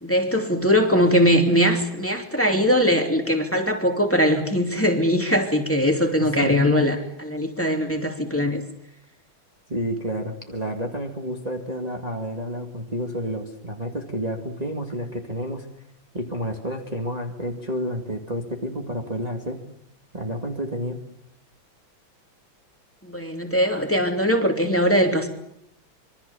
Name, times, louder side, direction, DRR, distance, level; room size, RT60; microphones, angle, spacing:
voice 1, 0.0-8.6 23.0-25.3, equal, 5° left, 4 dB, 2.8 m, -21 dB
voice 2, 6.2-6.6 9.7-15.7 16.1-19.6 20.1-21.0, equal, 20° right, 2 dB, 2.2 m, -30 dB
26.5 x 24.0 x 7.1 m, 0.75 s
omnidirectional pair, 2.2 m